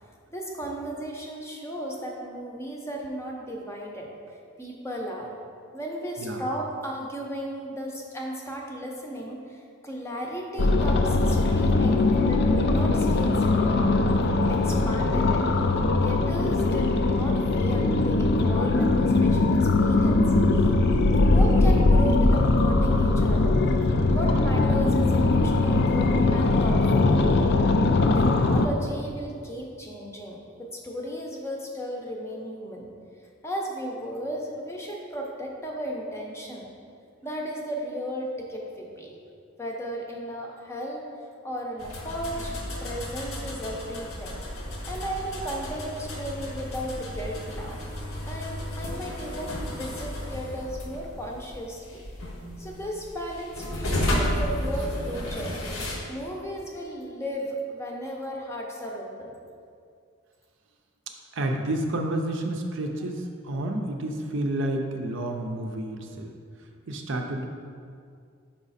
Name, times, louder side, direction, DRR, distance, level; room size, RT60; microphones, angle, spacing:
voice 1, 0.3-4.1 4.6-5.3 5.7-13.9 14.4-15.5 16.0-20.2 20.5-20.7 21.3-27.6 28.1-32.9 33.4-36.7 37.2-39.1 39.6-41.0 41.4-44.4 44.8-47.8 48.2-52.1 52.6-55.6 56.1-59.3, equal, 15° left, -1 dB, 0.6 m, -35 dB
sound 1, 10.6-28.7, left 2 dB, 50° left, 0.4 m, -21 dB
sound 2, 41.8-56.0, left 1 dB, 75° left, 1.0 m, -33 dB
voice 2, 61.3-66.3 66.9-67.5, right 1 dB, 60° right, 3 dB, 0.5 m, -30 dB
5.7 x 5.0 x 4.1 m, 2.3 s
head